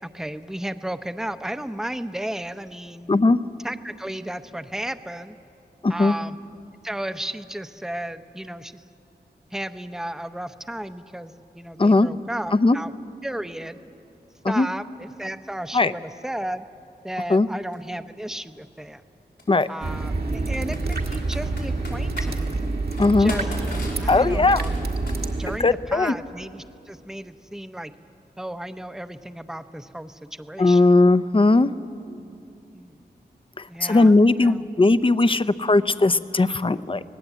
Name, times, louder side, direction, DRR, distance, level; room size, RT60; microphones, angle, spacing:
voice 1, 0.0-3.1 3.6-5.4 5.9-6.4 6.8-8.8 9.5-12.9 13.2-13.8 14.5-16.6 17.0-19.0 19.7-22.5 23.2-23.5 24.0-24.8 25.4-27.9 28.4-30.8 32.7-33.0 33.7-34.6, right 1 dB, 5° right, 9 dB, 0.8 m, -34 dB
voice 2, 3.1-3.4 5.8-6.1 11.8-12.1 12.5-12.8 14.4-14.7 15.7-15.9 17.3-17.5 19.5-19.7 23.0-23.3 24.1-24.6 25.6-26.1 30.6-31.7 33.6-37.0, left 2 dB, 30° left, 14 dB, 0.7 m, -18 dB
Computer keyboard, 17.7-17.8 19.4-19.7 20.5-22.3 22.9-25.6, left 2 dB, 90° left, 5.1 m, -37 dB
sound 1, 19.8-25.6, right 3 dB, 65° right, 1.7 m, -27 dB
25.5 x 19.0 x 8.2 m, 2.6 s
wide cardioid pair, 80°, 17 cm